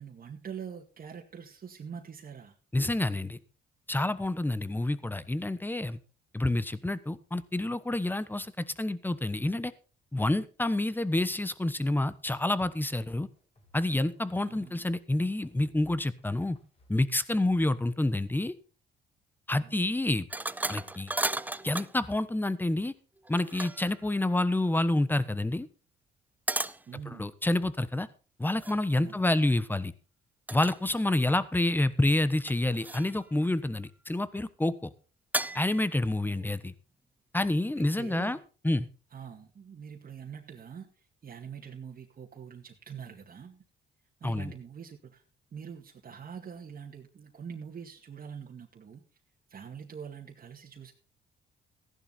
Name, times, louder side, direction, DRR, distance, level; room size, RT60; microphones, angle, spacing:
voice 1, 0.0-2.5 14.4-14.8 19.6-19.8 26.9-27.3 28.9-29.3 36.2-36.6 37.8-38.4 39.1-43.6 44.2-45.2 45.5-49.0 49.5-50.9, right 7 dB, 45° right, 0 dB, 2.2 m, -44 dB
voice 2, 2.7-3.4 3.9-6.0 6.3-9.7 10.1-13.3 13.7-16.6 16.9-18.5 19.5-20.3 20.7-21.1 21.6-22.9 23.3-25.7 27.1-28.1 28.4-29.9 30.5-34.9 35.5-36.7 37.3-38.4 38.6-38.9 44.2-44.5, left 1 dB, 10° left, 16 dB, 1.1 m, -28 dB
sound 1, 13.3-18.5, left 1 dB, 30° left, 5.3 m, -60 dB
sound 2, 20.3-22.0 23.3-24.0 26.5-26.8 28.6-28.8 30.5-30.8 31.1-31.7 32.5-33.2 35.3-35.9, right 2 dB, 10° right, 0.6 m, -34 dB
15.0 x 11.0 x 4.2 m, 0.36 s
cardioid pair, 90°, 20 cm